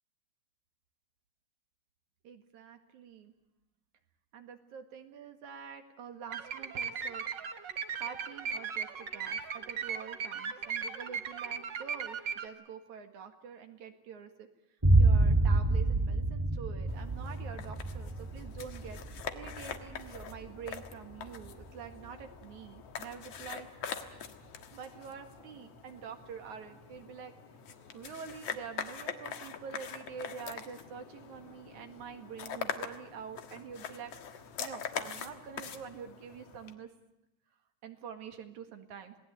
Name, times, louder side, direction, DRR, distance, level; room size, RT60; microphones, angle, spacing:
voice 1, 2.2-3.3 4.3-7.2 7.9-14.5 15.0-23.7 24.7-27.3 27.9-34.1 34.6-36.9 37.8-39.1, right 7 dB, 70° right, 7 dB, 3.2 m, -46 dB
sound 1, 6.3-12.5, right 6 dB, 50° right, 1.4 m, -37 dB
sound 2, 14.8-22.2, right 2 dB, 15° right, 1.0 m, -28 dB
sound 3, 16.9-36.7, left 8 dB, 55° left, 2.3 m, -43 dB
27.5 x 18.5 x 8.2 m, 0.90 s
omnidirectional pair, 3.6 m